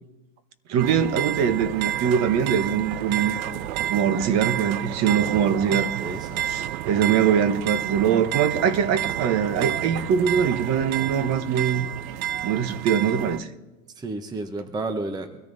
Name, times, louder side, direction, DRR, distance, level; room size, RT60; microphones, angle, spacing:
voice 1, 0.7-3.3 3.9-5.9 6.4-11.9 12.4-13.5, right 8 dB, 40° right, 1.1 m, -22 dB
sound 1, 0.8-13.4, right 11 dB, 75° right, 0.7 m, -30 dB
voice 2, 6.0-6.4 14.0-15.5, right 2 dB, 10° right, 0.8 m, -32 dB
23.5 x 13.5 x 2.7 m
supercardioid pair, 125°, 42 cm